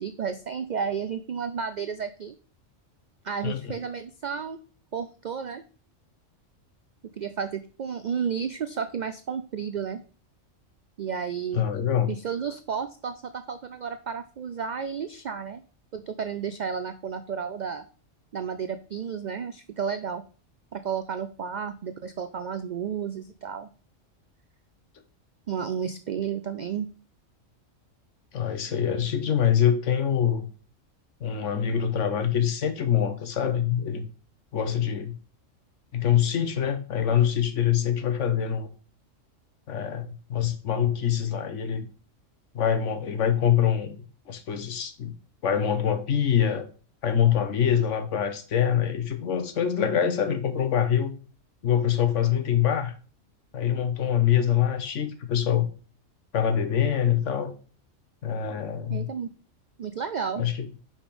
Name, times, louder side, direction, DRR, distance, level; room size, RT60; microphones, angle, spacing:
voice 1, 0.0-2.4 3.2-4.6 4.9-5.6 7.2-10.0 11.0-11.6 12.1-15.6 15.9-17.8 18.3-20.2 20.7-23.7 25.5-26.9 58.9-59.3 59.8-60.4, right 7 dB, 90° right, 10 dB, 0.4 m, -32 dB
voice 2, 3.4-3.8 11.5-12.1 28.3-30.5 31.2-34.0 34.5-35.2 35.9-38.7 39.7-41.9 42.5-44.0 44.3-45.1 45.4-46.6 47.0-51.1 51.6-52.9 53.5-55.7 56.3-57.5 58.2-59.1 60.4-60.7, left 9 dB, 70° left, 9 dB, 1.2 m, -24 dB
5.3 x 5.1 x 5.2 m, 0.39 s
omnidirectional pair, 1.3 m